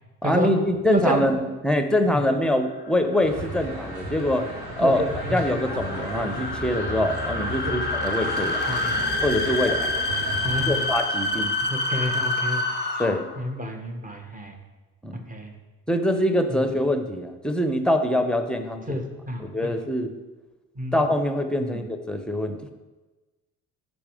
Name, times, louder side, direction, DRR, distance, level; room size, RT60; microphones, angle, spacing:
voice 1, 0.2-4.5 4.8-5.0 5.3-8.6 9.2-9.9 10.6-11.6 13.0-13.3 15.0-15.2 15.9-19.0 19.4-20.1 20.9-22.6, left 1 dB, ahead, 7 dB, 1.0 m, -24 dB
voice 2, 0.9-1.3 2.1-2.2 4.8-5.4 7.7-7.8 8.7-9.0 10.4-10.8 11.6-12.6 13.4-14.6 15.1-15.5 16.5-16.7 18.9-19.7 20.8-21.0 21.6-21.8, equal, 20° right, 3 dB, 1.8 m, -29 dB
sound 1, 2.7-13.4, left 2 dB, 20° left, 1.3 m, -28 dB
sound 2, 3.2-10.9, right 1 dB, 55° right, 2.2 m, -34 dB
8.6 x 6.2 x 5.1 m, 1.2 s
hypercardioid pair, 50°, 44 cm